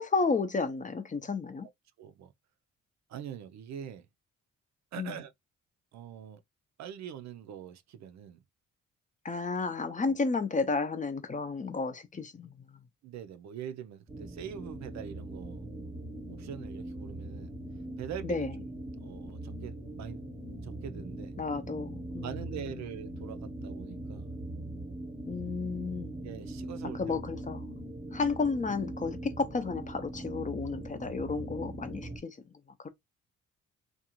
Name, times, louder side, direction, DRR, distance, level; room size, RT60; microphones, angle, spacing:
voice 1, 0.0-1.7 5.0-5.2 9.2-12.8 18.2-18.5 21.4-22.8 25.3-26.2 26.9-27.7 28.1-32.5 32.8-32.9, left 4 dB, 25° left, 0.6 m, -32 dB
voice 2, 2.0-2.3 3.1-4.1 4.9-5.3 5.9-6.4 6.8-8.4 10.0-10.2 13.0-15.7 16.3-17.5 18.0-18.7 19.0-20.2 20.6-21.3 22.1-24.3 26.2-27.2, right 9 dB, 65° right, 0.5 m, -43 dB
sound 1, 14.1-32.2, right 1 dB, 15° right, 0.8 m, -41 dB
2.5 x 2.3 x 2.9 m
cardioid pair, 90°, 30 cm